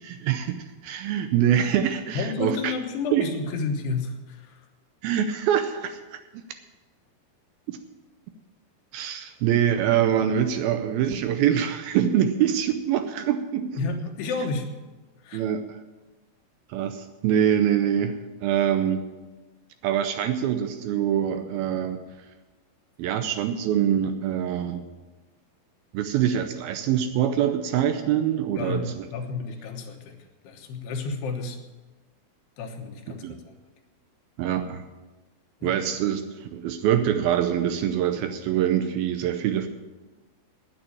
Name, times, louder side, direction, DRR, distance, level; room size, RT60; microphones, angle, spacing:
voice 1, 0.0-2.7 3.1-3.3 5.0-6.4 7.7-7.8 8.9-13.8 15.3-15.6 16.7-19.1 19.8-22.0 23.0-24.8 25.9-29.1 33.2-33.4 34.4-34.8 35.6-39.7, right 10 dB, 80° right, 8 dB, 2.3 m, -24 dB
voice 2, 2.2-4.6 13.8-14.7 15.2-15.5 28.6-30.2 30.4-31.6 32.6-33.5 35.6-35.7, left 4 dB, 80° left, 4 dB, 3.3 m, -31 dB
9.3 x 8.9 x 9.7 m, 1.2 s
omnidirectional pair, 4.7 m